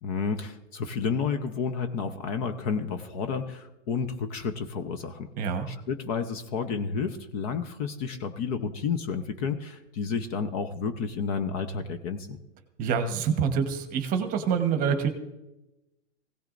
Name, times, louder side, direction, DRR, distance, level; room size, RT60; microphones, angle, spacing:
voice 1, 0.0-5.3 5.7-12.4, left 5 dB, 30° left, 8 dB, 0.9 m, -31 dB
voice 2, 5.4-5.7 12.8-15.1, right 6 dB, 25° right, 7 dB, 1.2 m, -26 dB
20.5 x 16.5 x 2.6 m, 0.95 s
hypercardioid pair, 150°, 36 cm